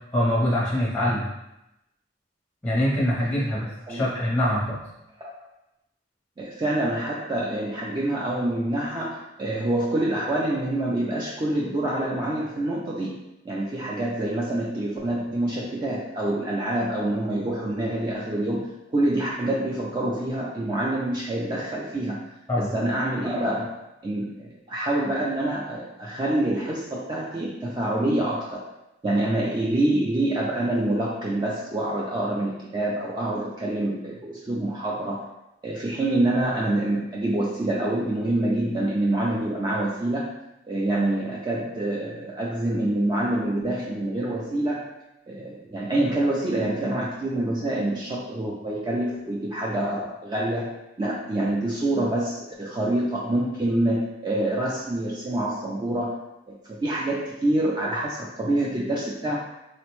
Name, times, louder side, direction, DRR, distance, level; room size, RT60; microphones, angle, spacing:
voice 1, 0.1-1.3 2.6-4.8 22.5-22.7, left 1 dB, 5° left, -6 dB, 0.6 m, -24 dB
voice 2, 6.4-13.2 13.5-23.8 24.0-28.6 29.0-35.3 35.6-40.3 40.7-44.9 45.3-56.2 56.5-59.4, right 1 dB, 25° right, -4 dB, 0.3 m, -26 dB
3.7 x 2.1 x 2.9 m, 0.90 s
head